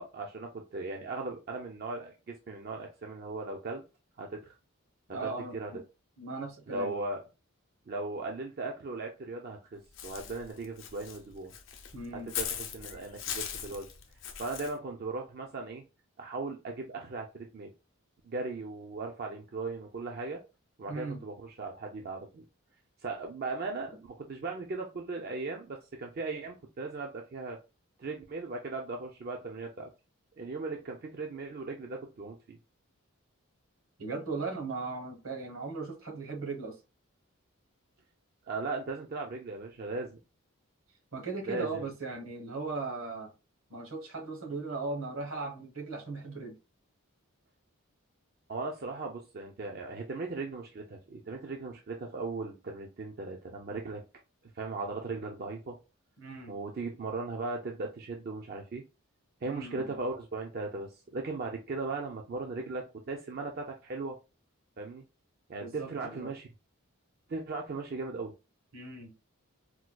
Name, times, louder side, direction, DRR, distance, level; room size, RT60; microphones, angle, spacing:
voice 1, 0.0-3.8 4.2-4.5 5.1-5.7 6.7-7.2 7.9-11.5 12.2-13.9 14.4-15.8 16.2-17.7 18.3-20.4 20.8-22.4 23.0-27.6 28.0-29.9 30.4-32.6 38.5-40.2 41.5-41.8 48.5-54.0 54.5-55.8 56.5-58.8 59.4-64.2 64.8-65.0 65.5-66.5 67.3-68.3, right 3 dB, 45° right, 0.4 m, -38 dB
voice 2, 5.1-5.8 6.2-6.9 11.9-12.3 20.9-21.2 34.0-36.8 41.1-43.3 43.7-46.6 56.2-56.6 59.5-59.9 65.6-66.3 68.7-69.1, right 3 dB, 70° right, 1.0 m, -38 dB
Walk footsteps / Bird, 10.0-14.7, left 8 dB, 60° left, 0.6 m, -39 dB
4.4 x 2.2 x 2.2 m
head